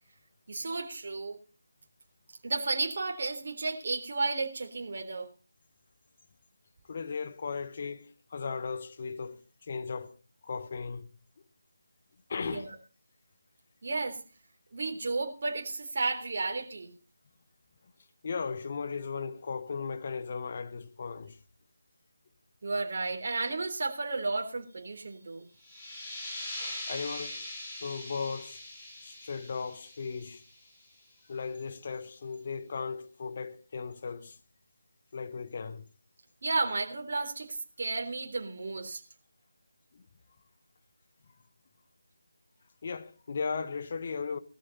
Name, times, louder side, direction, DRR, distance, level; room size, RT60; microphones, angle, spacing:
voice 1, 0.5-1.4 2.4-5.3 12.4-12.7 13.8-14.2 14.7-16.9 22.6-25.5 36.4-39.0, right 3 dB, 40° right, 3.7 m, -33 dB
voice 2, 6.9-10.2 10.4-11.1 12.3-12.7 18.2-21.4 26.9-27.4 27.8-28.6 29.0-30.4 31.3-34.4 35.1-35.8 39.9-40.0 42.8-44.4, left 5 dB, 35° left, 1.4 m, -36 dB
sound 1, 25.6-31.0, left 1 dB, 15° left, 5.3 m, -42 dB
18.0 x 14.0 x 4.2 m
figure-of-eight pair, 160°, 0 cm